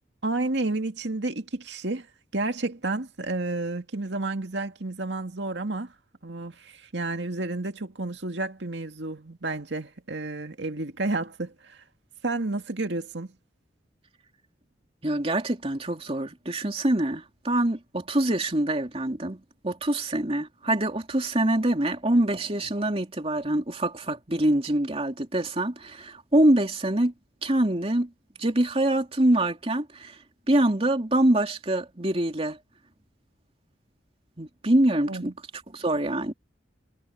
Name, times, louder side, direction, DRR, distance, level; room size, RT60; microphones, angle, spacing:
voice 1, 0.2-2.1 2.3-5.9 6.2-11.8 12.2-13.3 35.1-35.3, right 2 dB, 75° right, 2.1 m, -31 dB
voice 2, 15.0-27.1 27.4-28.1 28.4-30.2 30.5-32.6 34.4-35.3 35.7-36.3, right 1 dB, 30° right, 2.9 m, -25 dB
head